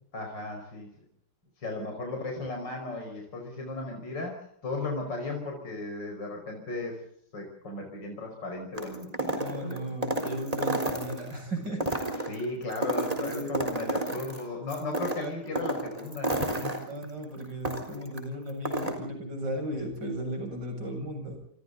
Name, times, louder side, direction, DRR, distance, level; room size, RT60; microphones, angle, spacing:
voice 1, 0.1-0.9 1.6-7.0 7.3-9.9 12.2-16.3 16.6-16.8, left 2 dB, 55° left, 2 dB, 6.1 m, -36 dB
sound 1, 8.7-11.3 11.7-14.4 14.7-18.2 18.5-18.9, right 1 dB, 15° right, 4.0 m, -31 dB
voice 2, 9.3-12.0 13.2-14.1 15.2-15.6 16.9-21.4, equal, 55° right, 4 dB, 8.3 m, -36 dB
28.0 x 26.5 x 4.0 m, 0.64 s
omnidirectional pair, 2.3 m